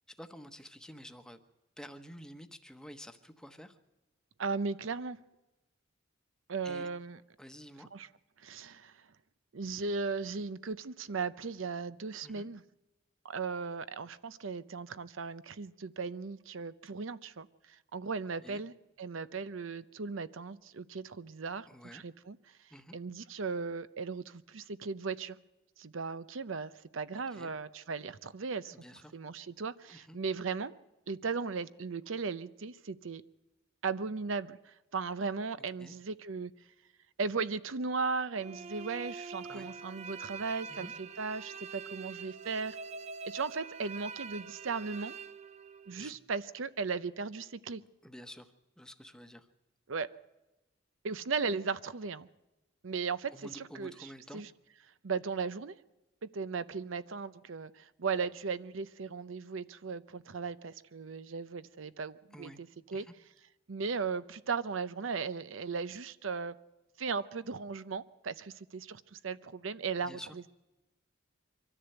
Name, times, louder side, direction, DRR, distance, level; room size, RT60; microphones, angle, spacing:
voice 1, 0.1-1.4 1.8-3.8 6.6-6.9 7.4-7.9 12.2-12.5 18.4-18.6 21.7-22.0 22.7-23.0 27.1-27.5 28.7-29.2 29.9-30.2 35.8-35.9 39.5-39.7 40.7-40.9 46.0-46.2 48.0-49.5 53.3-54.4 62.3-62.6 62.9-63.1 70.0-70.4, equal, 5° left, 7 dB, 1.1 m, -50 dB
voice 2, 4.4-5.2 6.5-7.2 7.9-8.1 8.4-9.0 9.5-12.6 13.2-22.4 22.9-25.4 25.8-28.8 29.1-30.8 31.1-33.2 33.8-36.5 37.2-42.8 43.2-45.2 45.9-47.8 49.9-50.1 51.0-52.3 52.8-54.5 55.0-55.8 56.2-63.1 63.7-66.6 67.0-70.2, right 4 dB, 75° right, 15 dB, 0.7 m, -37 dB
sound 1, 38.4-46.1, right 5 dB, 35° right, 0.7 m, -45 dB
24.0 x 13.5 x 7.9 m, 1.0 s
head